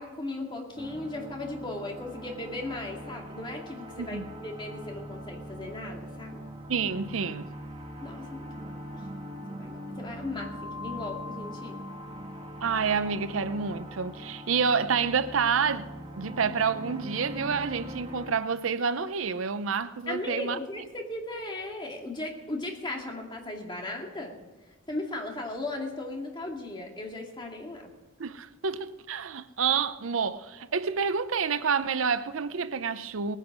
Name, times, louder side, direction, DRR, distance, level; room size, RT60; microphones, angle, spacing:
voice 1, 0.0-6.4 8.0-9.1 9.5-11.8 20.1-24.3 24.9-27.9, left 2 dB, 25° left, 2.4 m, -37 dB
sound 1, 0.7-18.3, equal, 30° right, 1.4 m, -41 dB
voice 2, 6.7-7.5 12.6-15.9 16.2-20.6 28.2-33.4, right 6 dB, 75° right, 0.6 m, -28 dB
19.0 x 10.0 x 6.1 m
head